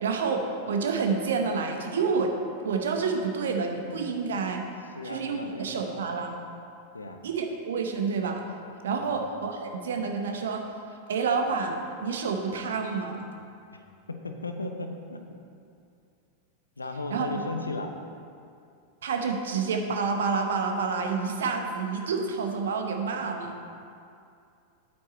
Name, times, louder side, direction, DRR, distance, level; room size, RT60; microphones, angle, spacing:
voice 1, 0.0-2.3 2.6-4.6 5.0-6.4 7.2-8.4 8.8-10.6 11.1-13.2 17.1-17.4 19.0-23.5, right 5 dB, 65° right, 4 dB, 1.0 m, -28 dB
voice 2, 4.9-6.0 6.9-7.2 9.0-9.2 13.7-15.2 16.8-17.9, left 2 dB, 80° left, 5 dB, 0.8 m, -36 dB
8.8 x 8.4 x 4.3 m, 2.5 s
figure-of-eight pair, 90°, 0 cm